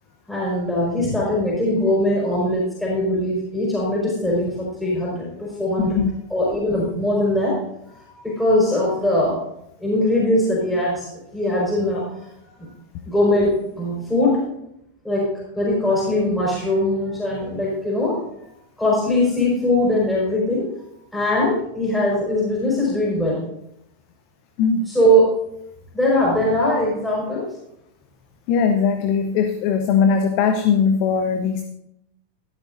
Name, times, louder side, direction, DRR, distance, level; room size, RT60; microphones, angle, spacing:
voice 1, 0.3-6.0 6.3-7.6 7.8-9.4 9.8-12.3 12.6-12.7 13.0-14.4 15.0-15.3 15.5-18.2 18.8-20.7 21.1-23.4 24.9-25.3 25.9-27.5, left 1 dB, 5° left, -5 dB, 4.7 m, -21 dB
voice 2, 5.8-6.1 24.6-24.9 28.5-31.7, left 6 dB, 45° left, 7 dB, 0.8 m, -19 dB
14.5 x 13.0 x 2.6 m, 0.80 s
figure-of-eight pair, 90°, 0 cm